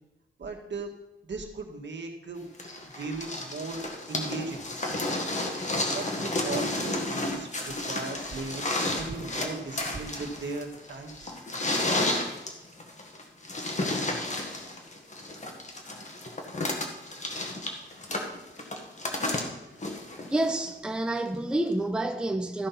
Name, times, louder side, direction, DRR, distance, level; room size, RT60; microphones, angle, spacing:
voice 1, 0.4-0.9 1.2-2.5 2.8-4.6 5.9-11.3, right 3 dB, 70° right, 1.7 m, -37 dB
sound 1, 2.6-20.7 21.7-21.8, left 2 dB, 40° left, 1.7 m, -32 dB
voice 2, 20.3-22.7, right 1 dB, 5° right, 0.6 m, -28 dB
14.0 x 5.5 x 5.9 m
wide cardioid pair, 130°, 20 cm